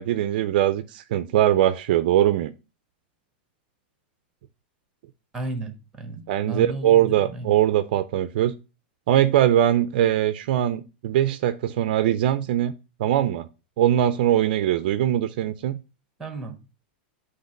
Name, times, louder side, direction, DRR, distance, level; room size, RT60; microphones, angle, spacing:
voice 1, 0.0-2.5 6.3-8.5 9.1-12.7 13.0-13.5 13.8-15.8, right 12 dB, 60° right, 0.5 m, -21 dB
voice 2, 5.3-7.6 16.2-16.6, right 2 dB, 10° right, 1.3 m, -34 dB
8.0 x 3.3 x 5.1 m
supercardioid pair, 155°, 6 cm